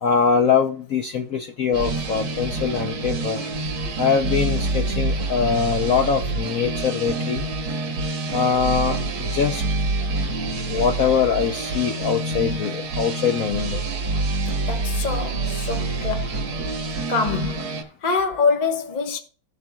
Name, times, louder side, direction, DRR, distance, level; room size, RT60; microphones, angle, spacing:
voice 1, 0.0-3.4 4.0-7.4 8.3-9.6 10.7-13.9, left 6 dB, 70° left, 0.8 m, -23 dB
sound 1, 1.7-17.8, right 2 dB, 75° right, 2.1 m, -27 dB
voice 2, 14.6-16.4 17.1-19.2, left 5 dB, 30° left, 0.9 m, -25 dB
18.0 x 6.8 x 2.3 m
omnidirectional pair, 2.3 m